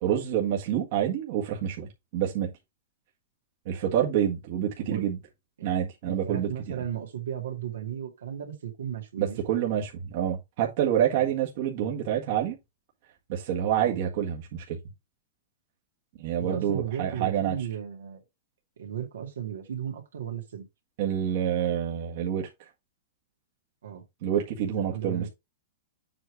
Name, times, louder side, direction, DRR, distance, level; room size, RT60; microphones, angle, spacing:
voice 1, 0.0-2.5 3.6-5.2 5.6-6.8 9.2-12.6 13.3-14.8 16.2-17.6 21.0-22.5 24.2-25.2, right 10 dB, 55° right, 1.6 m, -27 dB
voice 2, 4.8-5.1 5.6-5.7 6.1-9.4 11.1-11.3 13.8-14.0 16.4-18.2 18.8-20.7 23.8-24.0 24.8-25.3, right 9 dB, 85° right, 2.3 m, -35 dB
7.6 x 3.3 x 4.7 m
hypercardioid pair, 140°, 0 cm